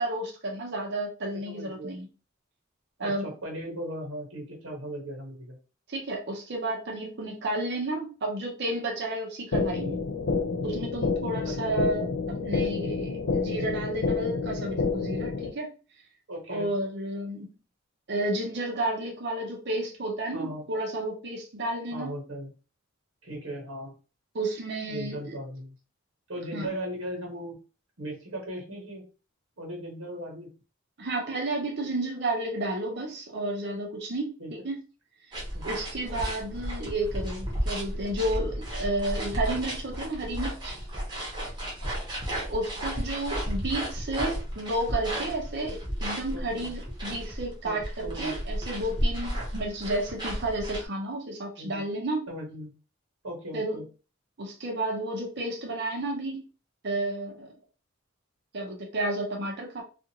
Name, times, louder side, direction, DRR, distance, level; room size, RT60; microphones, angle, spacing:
voice 1, 0.0-2.1 3.0-3.3 5.9-10.0 10.6-15.7 16.5-17.5 18.1-22.1 24.3-25.3 26.5-26.7 31.0-34.8 35.6-40.7 42.5-52.2 53.5-53.8 54.4-56.4 56.8-57.5 58.5-59.8, right 1 dB, 55° right, 0 dB, 0.7 m, -31 dB
voice 2, 1.2-2.0 3.0-5.6 11.4-11.8 16.3-16.7 20.3-20.6 21.9-22.5 23.2-23.9 24.9-25.7 26.3-27.6 28.0-29.0 29.6-30.5 34.4-34.5 35.5-35.7 41.8-42.0 46.3-46.7 47.6-48.4 51.6-51.8 52.3-52.7 53.2-53.8, right 1 dB, 85° right, 0 dB, 1.3 m, -38 dB
sound 1, 9.5-15.5, left 4 dB, 75° left, 0.4 m, -29 dB
sound 2, 35.3-50.9, equal, 20° right, 0.9 m, -33 dB
2.5 x 2.5 x 2.8 m, 0.34 s
head